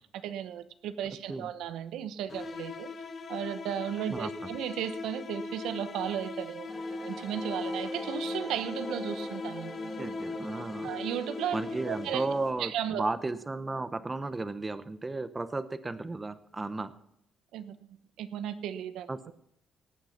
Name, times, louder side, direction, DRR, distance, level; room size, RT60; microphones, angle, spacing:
voice 1, 0.2-2.9 3.3-10.0 10.8-11.6 11.8-12.2 12.6-13.1 17.5-17.7 18.2-19.3, right 10 dB, 85° right, 12 dB, 0.9 m, -35 dB
sound 1, 2.3-12.5, left 3 dB, 45° left, 1.3 m, -39 dB
voice 2, 4.1-4.5 10.0-10.9 11.5-16.9 19.1-19.2, right 3 dB, 20° right, 13 dB, 1.0 m, -34 dB
sound 2, 6.7-12.5, equal, ahead, 2.5 m, -43 dB
17.5 x 9.0 x 5.9 m, 0.75 s
cardioid pair, 90°, 0 cm